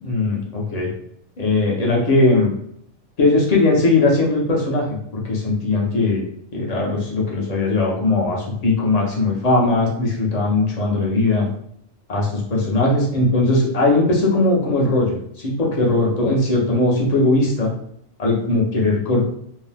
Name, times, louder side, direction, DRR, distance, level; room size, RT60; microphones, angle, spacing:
voice 1, 0.0-0.9 1.4-2.5 3.2-4.8 5.1-6.2 6.5-11.5 12.1-17.7 18.2-19.3, left 2 dB, 40° left, -2 dB, 0.6 m, -19 dB
2.7 x 2.1 x 3.3 m, 0.71 s
omnidirectional pair, 1.3 m